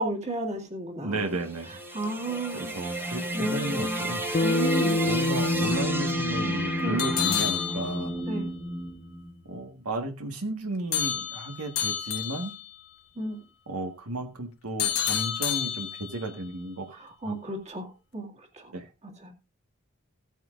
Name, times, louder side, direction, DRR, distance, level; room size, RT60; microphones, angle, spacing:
voice 1, 0.0-1.2 1.9-4.0 4.4-5.0 6.8-7.0 8.3-8.5 13.2-13.4 17.0-17.9 18.1-18.3 18.6-18.7 19.2-19.3, right 1 dB, 30° right, 2 dB, 2.2 m, -33 dB
voice 2, 1.0-1.8 2.5-4.2 5.0-8.1 9.4-12.5 13.7-17.0 17.2-17.4 18.7-18.9, right 2 dB, 80° right, 4 dB, 1.6 m, -33 dB
sound 1, 1.2-9.5, right 1 dB, 10° right, 1.5 m, -32 dB
Bass guitar, 4.3-8.8, left 2 dB, 40° left, 0.7 m, -29 dB
sound 2, 7.0-8.3 10.9-12.7 14.8-16.3, left 10 dB, 70° left, 1.3 m, -29 dB
16.5 x 9.1 x 2.5 m, 0.28 s
head